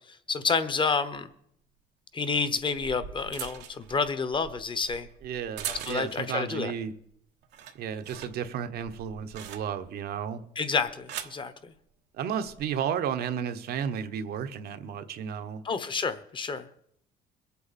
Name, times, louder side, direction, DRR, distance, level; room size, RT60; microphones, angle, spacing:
voice 1, 0.1-1.3 2.1-5.1 5.7-6.7 10.6-11.7 15.6-16.7, left 5 dB, 30° left, 1.0 m, -29 dB
sound 1, 2.6-6.4 6.8-7.1 7.4-10.0 10.7-11.4 12.3-12.6, right 10 dB, 85° right, 1.2 m, -42 dB
voice 2, 5.2-6.9 7.8-10.4 12.1-15.6, right 8 dB, 65° right, 1.1 m, -33 dB
22.0 x 8.4 x 4.2 m
cardioid pair, 110°, 17 cm